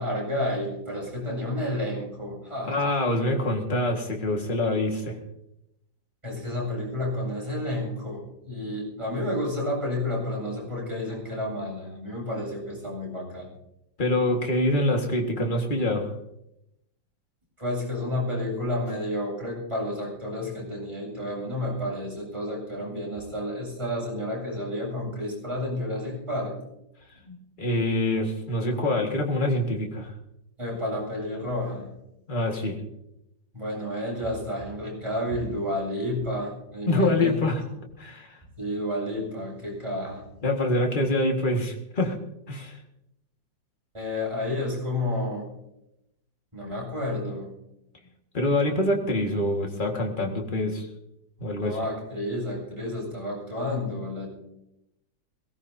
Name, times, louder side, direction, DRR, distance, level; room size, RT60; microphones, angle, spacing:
voice 1, 0.0-2.8 6.2-13.5 17.6-26.6 30.6-31.9 33.5-37.3 38.6-40.3 43.9-45.5 46.5-47.5 51.6-54.3, left 1 dB, 15° right, -3 dB, 8.0 m, -30 dB
voice 2, 2.7-5.2 14.0-16.1 27.3-30.1 32.3-32.8 36.9-37.6 38.0-38.4 40.4-42.2 42.5-42.7 48.3-50.9 51.4-51.8, left 1 dB, 25° left, 2 dB, 2.0 m, -25 dB
22.5 x 18.0 x 2.8 m, 0.84 s
omnidirectional pair, 2.0 m